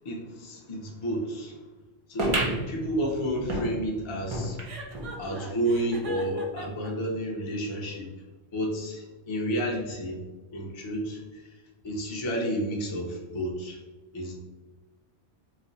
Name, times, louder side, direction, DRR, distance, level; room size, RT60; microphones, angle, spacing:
voice 1, 0.0-1.6 2.1-4.6 5.2-8.1 8.5-10.2 10.5-11.6 11.8-13.8 14.1-14.4, right 1 dB, 45° left, -2 dB, 0.3 m, -31 dB
sound 1, 2.2-5.1 5.6-5.7 5.9-6.0 6.8-6.9, right 1 dB, 50° right, 0.4 m, -31 dB
Chuckle chortle, 4.6-6.9, right 2 dB, 85° right, 1.0 m, -41 dB
2.4 x 2.0 x 3.7 m, 1.2 s
omnidirectional pair, 1.2 m